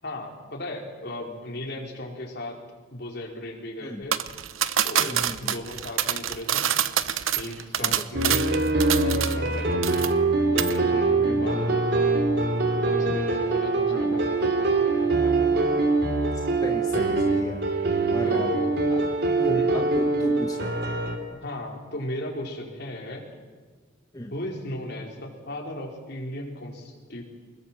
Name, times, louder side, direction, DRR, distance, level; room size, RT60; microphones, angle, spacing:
voice 1, 0.0-2.6 2.9-4.2 4.8-6.7 7.3-8.7 9.0-10.1 10.4-11.9 12.7-15.5 18.2-18.7 19.5-19.8 21.3-23.2 24.3-27.2, left 1 dB, 55° left, 0 dB, 4.7 m, -36 dB
sound 1, 4.1-9.5 9.8-10.3 10.6-10.8, right 10 dB, 85° right, 0.9 m, -26 dB
voice 2, 5.0-5.5 7.8-7.9 11.2-11.5 13.9-14.2 16.6-17.6 18.1-18.5 19.4-20.7 24.1-24.3, left 1 dB, 20° left, 2 dB, 1.3 m, -35 dB
sound 2, 8.1-21.2, right 3 dB, 55° right, 3.0 m, -23 dB
25.5 x 21.0 x 7.6 m, 1.5 s
head